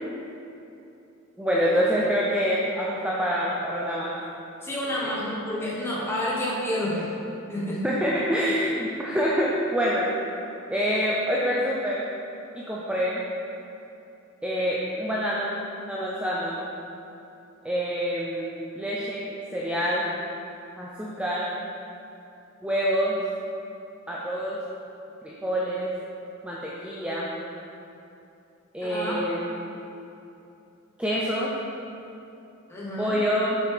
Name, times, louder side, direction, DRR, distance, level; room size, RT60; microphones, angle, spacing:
voice 1, 1.4-4.1 5.0-5.1 7.8-10.1 10.7-12.1 12.5-13.2 14.4-16.6 17.6-20.1 20.8-21.5 22.6-23.2 24.1-24.6 25.2-25.9 26.4-27.3 28.7-29.4 31.0-31.5 33.0-33.6, equal, 5° right, -6 dB, 0.5 m, -26 dB
voice 2, 4.6-7.1 7.5-7.8 28.8-29.2 32.7-33.2, left 1 dB, 10° left, -7 dB, 1.3 m, -29 dB
7.2 x 6.1 x 3.5 m, 2.8 s
head